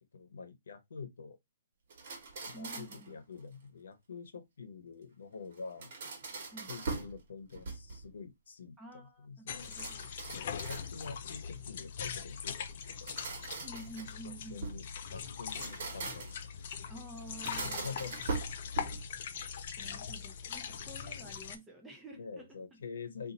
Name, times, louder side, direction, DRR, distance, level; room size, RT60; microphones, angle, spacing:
voice 1, 0.1-1.4 2.5-5.9 6.7-9.7 10.3-13.1 14.2-16.3 16.6-16.7 17.5-18.3 22.1-23.3, left 5 dB, 80° left, 0.9 m, -46 dB
sound 1, 1.9-3.1 5.5-7.2 7.5-8.1 9.6-11.2 12.8-14.9 15.4-16.5 17.3-19.1, right 4 dB, 50° right, 1.2 m, -42 dB
voice 2, 2.5-3.2 6.5-6.8 8.8-10.1 13.6-14.7 16.9-18.1 19.8-22.6, right 1 dB, 5° right, 0.7 m, -50 dB
sound 2, 9.5-21.6, left 7 dB, 45° left, 0.5 m, -41 dB
2.6 x 2.6 x 3.9 m
hypercardioid pair, 165°, 0 cm